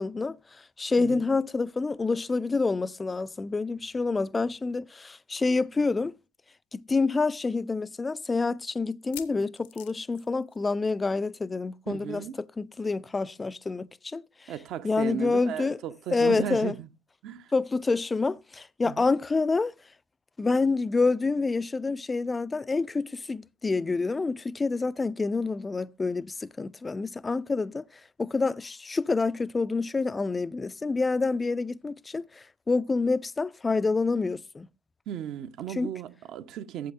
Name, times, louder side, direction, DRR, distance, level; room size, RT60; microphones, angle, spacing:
voice 1, 0.0-6.1 6.7-14.5 14.8-15.8 16.1-16.8 17.5-19.7 20.4-34.7 35.7-35.9, left 3 dB, 20° left, 0.4 m, -28 dB
voice 2, 1.0-1.3 11.9-12.4 14.5-16.9 17.2-17.5 18.8-19.1 35.1-36.9, right 10 dB, 50° right, 0.7 m, -36 dB
sound 1, 6.2-6.3 6.6-6.7 7.3-7.4 8.9-11.1 11.3-11.5 11.8-11.9 13.3-13.4, left 14 dB, 65° left, 0.7 m, -47 dB
15.0 x 8.3 x 2.5 m
figure-of-eight pair, 65°, 0 cm